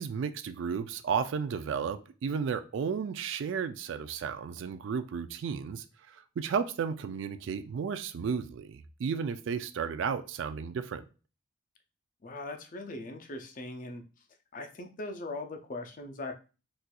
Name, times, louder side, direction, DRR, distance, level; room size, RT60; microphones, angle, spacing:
voice 1, 0.0-11.0, right 6 dB, 65° right, 0.3 m, -33 dB
voice 2, 12.2-14.0 14.5-16.3, left 2 dB, 40° left, 0.4 m, -40 dB
4.1 x 2.5 x 2.2 m
head